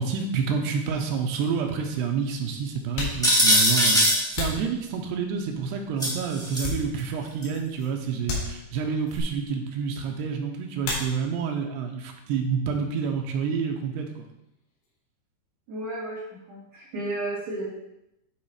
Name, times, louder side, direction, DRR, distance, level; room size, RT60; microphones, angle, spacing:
voice 1, 0.0-14.3, right 6 dB, 80° right, 3 dB, 2.8 m, -28 dB
sound 1, 2.9-5.4 6.0-7.3 7.6-7.8 8.2-9.1 10.8-11.6 11.9-12.6 12.8-15.0, left 3 dB, 90° left, 5.0 m, -36 dB
sound 2, 3.2-4.2 6.0-6.7 7.4-7.5 9.2-9.3, equal, ahead, 0.9 m, -20 dB
voice 2, 15.7-17.7, right 1 dB, 50° right, -10 dB, 3.4 m, -33 dB
11.5 x 4.0 x 4.9 m, 0.83 s
omnidirectional pair, 5.1 m